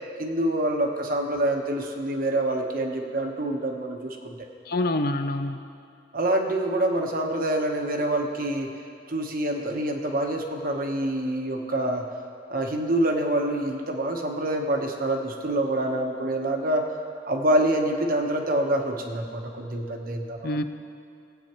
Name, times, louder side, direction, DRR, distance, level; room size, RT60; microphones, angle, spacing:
voice 1, 0.2-4.4 6.1-8.7 9.1-12.1 12.5-16.9 17.3-20.6, right 1 dB, 55° right, 3 dB, 1.1 m, -26 dB
voice 2, 4.7-5.6 20.4-20.6, left 2 dB, 60° left, 8 dB, 0.6 m, -26 dB
20.0 x 8.4 x 3.0 m, 2.5 s
head